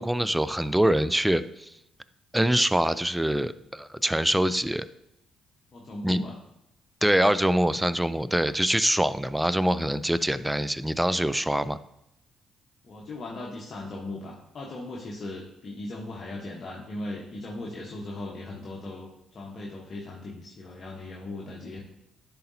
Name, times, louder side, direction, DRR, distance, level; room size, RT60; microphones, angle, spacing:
voice 1, 0.0-1.7 2.3-4.9 6.0-6.2 7.0-11.8, right 1 dB, 5° right, 15 dB, 0.3 m, -24 dB
voice 2, 5.7-6.4 12.8-21.8, left 2 dB, 50° left, -3 dB, 1.0 m, -38 dB
10.5 x 4.0 x 2.7 m, 0.83 s
supercardioid pair, 60°, 0 cm